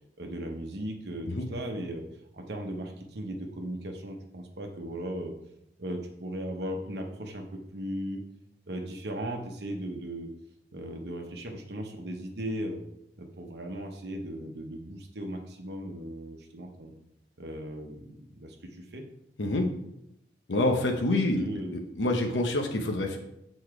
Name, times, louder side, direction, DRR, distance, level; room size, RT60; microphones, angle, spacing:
voice 1, 0.2-5.3 5.8-8.2 8.7-10.3 10.7-12.8 13.2-16.9 17.4-19.1 21.4-21.7, right 1 dB, 65° right, 2 dB, 0.8 m, -37 dB
voice 2, 20.5-23.2, left 2 dB, 90° left, 4 dB, 0.8 m, -27 dB
6.8 x 4.2 x 4.7 m, 0.81 s
head